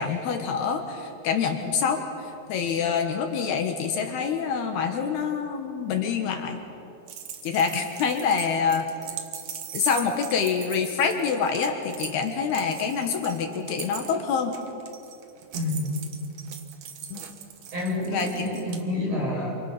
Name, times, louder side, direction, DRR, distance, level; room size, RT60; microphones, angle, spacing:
voice 1, 0.0-2.0 2.5-6.6 7.4-8.9 9.7-14.5 17.1-17.2 18.1-18.4, left 6 dB, 70° left, 4 dB, 3.3 m, -26 dB
sound 1, 7.1-18.8, right 8 dB, 60° right, 2.3 m, -40 dB
voice 2, 15.5-15.9 17.7-19.5, left 1 dB, 35° right, -4 dB, 8.5 m, -28 dB
28.0 x 26.5 x 6.0 m, 2.7 s
omnidirectional pair, 4.9 m